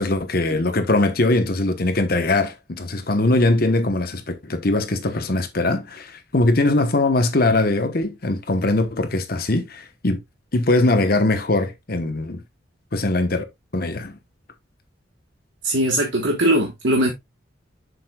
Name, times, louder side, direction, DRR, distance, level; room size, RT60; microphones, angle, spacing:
voice 1, 0.0-10.2 10.5-12.4 12.9-13.4 13.7-14.2, left 2 dB, 50° left, 1.0 m, -21 dB
voice 2, 15.6-17.1, right 1 dB, 70° right, 1.3 m, -20 dB
7.7 x 6.6 x 2.3 m
head